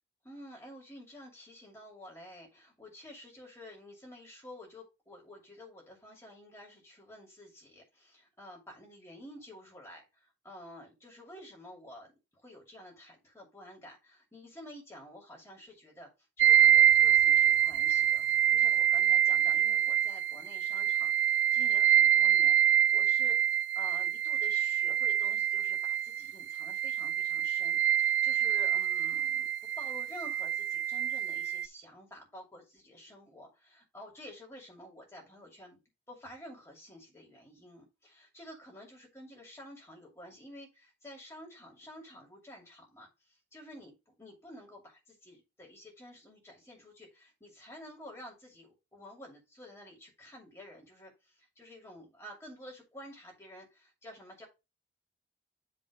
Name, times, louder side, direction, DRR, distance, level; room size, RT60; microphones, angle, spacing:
voice 1, 0.2-16.1 16.4-23.4 23.7-35.8 36.1-43.1 43.5-51.1 51.6-54.5, left 1 dB, 15° left, -1 dB, 2.5 m, -51 dB
sound 1, 16.4-31.7, right 10 dB, 80° right, 0.4 m, -26 dB
7.9 x 3.4 x 5.0 m, 0.25 s
head